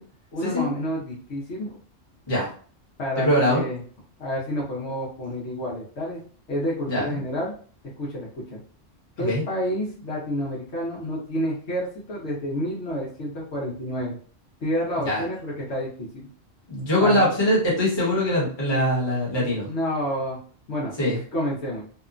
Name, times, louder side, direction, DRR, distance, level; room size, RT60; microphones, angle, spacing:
voice 1, 0.3-1.7 3.0-3.8 4.2-6.2 6.5-7.5 8.0-8.6 9.2-14.2 14.6-16.3 17.0-17.3 19.7-20.4 20.7-20.9 21.3-21.8, equal, 65° left, -5 dB, 1.0 m, -29 dB
voice 2, 3.2-3.6 6.9-7.1 9.2-9.4 15.0-15.2 16.7-19.7 21.0-21.2, left 1 dB, 20° left, -5 dB, 1.0 m, -22 dB
2.8 x 2.1 x 2.4 m, 0.43 s
omnidirectional pair, 1.3 m